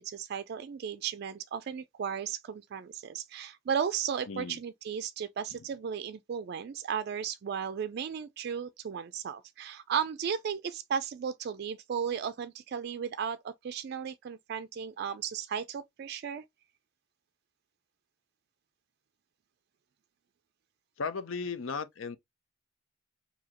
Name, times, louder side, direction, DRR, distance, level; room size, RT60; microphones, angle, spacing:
voice 1, 0.0-16.4, right 7 dB, 55° right, 0.3 m, -35 dB
voice 2, 4.3-4.6 21.0-22.2, left 5 dB, 75° left, 0.6 m, -35 dB
4.8 x 2.8 x 2.9 m
head